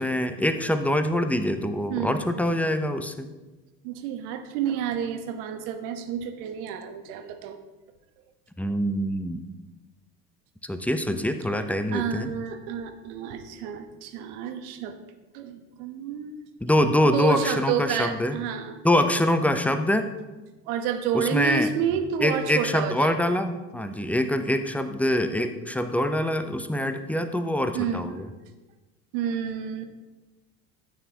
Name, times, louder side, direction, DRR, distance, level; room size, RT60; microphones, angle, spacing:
voice 1, 0.0-3.3 8.6-9.4 10.6-12.3 16.6-18.4 18.8-20.1 21.1-21.7 22.2-28.3, left 1 dB, 5° left, 8 dB, 0.6 m, -24 dB
voice 2, 1.9-2.3 3.8-7.6 11.9-15.0 15.3-16.4 17.1-18.8 20.7-23.3 27.7-28.1 29.1-29.9, right 8 dB, 60° right, 7 dB, 1.2 m, -30 dB
13.5 x 8.8 x 2.9 m, 1.1 s
figure-of-eight pair, 70°, 50 cm